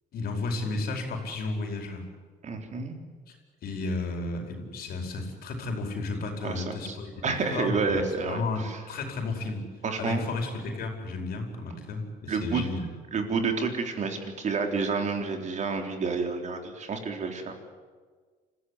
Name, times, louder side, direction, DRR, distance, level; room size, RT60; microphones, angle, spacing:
voice 1, 0.1-2.0 3.3-3.4 3.6-8.6 8.9-9.6 10.0-12.9, left 3 dB, 65° left, 3 dB, 5.0 m, -33 dB
voice 2, 2.4-3.0 6.4-6.9 7.2-8.8 9.8-10.2 12.3-12.6 13.1-17.6, right 4 dB, 45° right, 4 dB, 3.8 m, -29 dB
25.0 x 15.5 x 9.9 m, 1.5 s
cardioid pair, 110°, 17 cm